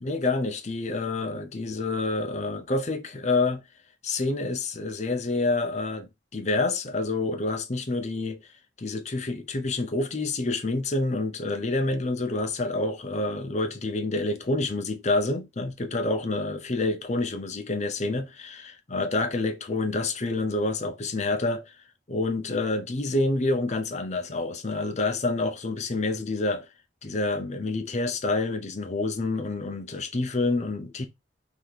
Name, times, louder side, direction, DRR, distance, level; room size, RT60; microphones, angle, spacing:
voice 1, 0.0-3.6 4.0-8.4 8.8-21.6 22.1-26.6 27.0-31.1, left 2 dB, 40° left, 0.6 m, -28 dB
4.0 x 3.0 x 3.3 m
head